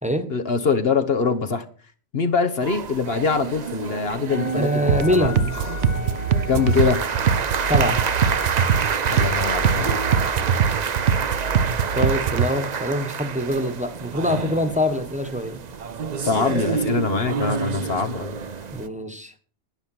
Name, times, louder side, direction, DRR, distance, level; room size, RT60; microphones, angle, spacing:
voice 1, 0.3-1.6 2.1-5.3 6.5-7.0 9.1-10.0 16.2-18.3, left 5 dB, 60° left, 7 dB, 1.4 m, -23 dB
sound 1, 2.6-18.9, right 6 dB, 45° right, 0.7 m, -28 dB
Wind instrument woodwind instrument, 4.3-10.7, left 4 dB, 40° left, 1.4 m, -37 dB
voice 2, 4.5-5.5 7.7-8.0 10.4-10.8 11.9-15.6 18.7-19.3, equal, 5° right, 7 dB, 1.3 m, -24 dB
sound 2, 4.9-12.5, right 7 dB, 85° right, 1.1 m, -23 dB
10.5 x 10.5 x 6.2 m, 0.41 s
omnidirectional pair, 1.2 m